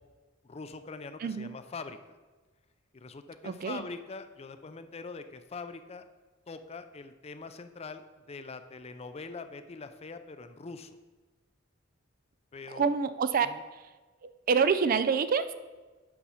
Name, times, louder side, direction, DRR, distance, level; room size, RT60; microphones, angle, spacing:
voice 1, 0.4-2.2 2.9-6.0 6.5-8.0 8.3-11.0 12.5-12.9 13.4-13.6, left 4 dB, 30° left, 10 dB, 0.5 m, -43 dB
voice 2, 3.4-3.8 12.7-13.5 14.2-15.5, right 6 dB, 45° right, 12 dB, 0.4 m, -27 dB
6.9 x 6.1 x 5.6 m, 1.3 s
head